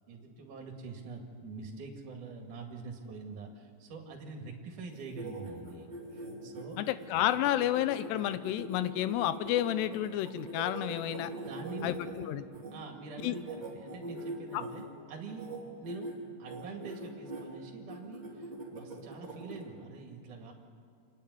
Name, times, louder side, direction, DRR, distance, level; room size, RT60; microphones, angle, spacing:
voice 1, 0.1-6.8 11.4-12.0 12.7-15.5 15.8-16.1 16.4-20.5, right 4 dB, 55° right, 1 dB, 3.4 m, -45 dB
sound 1, 4.9-12.7 13.2-14.8 15.3-15.6 15.8-16.1 16.5-17.4 17.9-19.6, right 2 dB, 10° right, 3.3 m, -42 dB
voice 2, 6.8-11.3 11.8-12.5 13.2-13.4 14.5-14.7, left 12 dB, 90° left, 13 dB, 2.9 m, -31 dB
27.0 x 10.5 x 9.7 m, 2.4 s
omnidirectional pair, 4.7 m